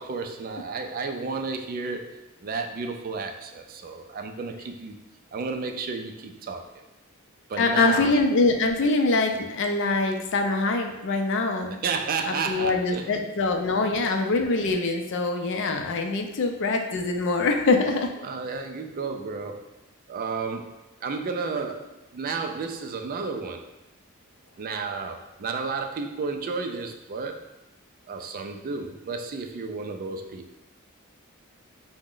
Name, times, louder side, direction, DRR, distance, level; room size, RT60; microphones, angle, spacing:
voice 1, 0.0-5.0 5.3-6.7 7.5-8.2 11.8-13.3 13.8-13.9 16.4-16.5 18.2-19.6 20.1-23.6 24.6-27.4 28.1-30.4, right 4 dB, 40° right, 5 dB, 0.3 m, -32 dB
voice 2, 7.6-11.8 12.5-18.1, left 3 dB, 60° left, 4 dB, 0.4 m, -24 dB
4.7 x 2.1 x 3.7 m, 0.94 s
head